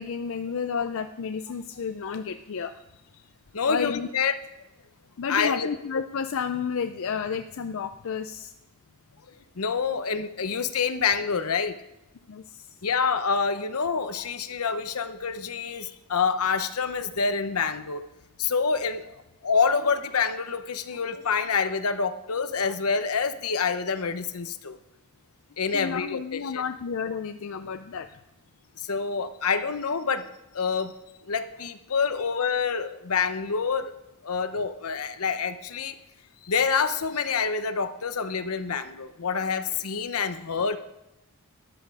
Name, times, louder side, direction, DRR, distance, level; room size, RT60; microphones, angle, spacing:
voice 1, 0.0-3.0 3.7-4.1 5.2-8.5 12.3-12.7 25.7-28.1, left 6 dB, 60° left, 9 dB, 0.5 m, -31 dB
voice 2, 3.5-4.4 5.3-5.7 9.6-11.7 12.8-18.0 18.4-19.1 19.4-24.8 25.6-26.6 28.8-30.2 30.5-30.9 31.3-33.9 34.2-36.0 36.4-40.8, left 5 dB, 80° left, 11 dB, 0.8 m, -27 dB
13.0 x 10.5 x 4.8 m, 0.92 s
head